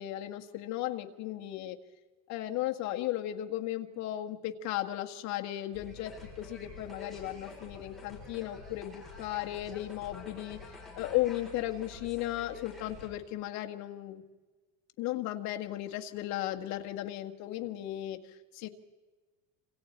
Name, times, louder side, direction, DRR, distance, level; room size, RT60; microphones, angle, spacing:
voice 1, 0.0-1.8 2.3-10.6 10.9-14.2 15.0-18.7, left 14 dB, 55° left, 4 dB, 1.8 m, -35 dB
sound 1, 5.7-13.1, left 3 dB, ahead, 7.2 m, -48 dB
27.0 x 26.5 x 4.4 m, 1.3 s
cardioid pair, 145°, 34 cm